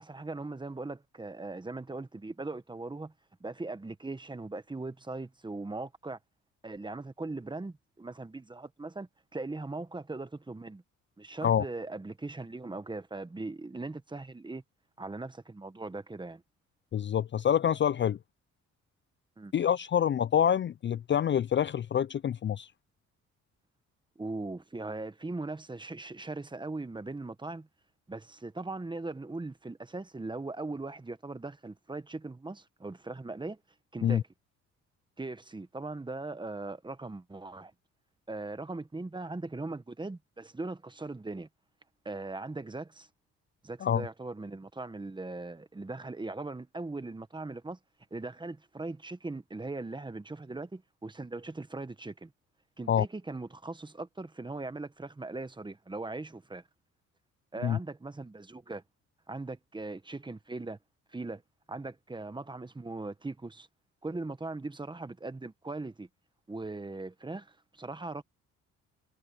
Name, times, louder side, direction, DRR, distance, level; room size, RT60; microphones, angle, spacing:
voice 1, 0.0-3.1 3.4-6.2 6.6-10.8 11.2-14.6 15.0-16.4 19.4-19.5 24.2-27.7 28.1-33.6 33.9-34.3 35.2-37.7 38.3-41.5 42.0-43.1 43.6-47.8 48.1-52.3 52.8-56.6 57.5-58.8 59.3-60.8 61.1-61.4 61.7-63.7 64.0-66.1 66.5-68.2, right 2 dB, 15° right, 1.3 m, -39 dB
voice 2, 16.9-18.2 19.5-22.7 34.0-34.2 43.8-44.1 52.9-53.0 57.6-57.8, left 9 dB, 40° left, 0.5 m, -26 dB
cardioid pair, 90°, 30 cm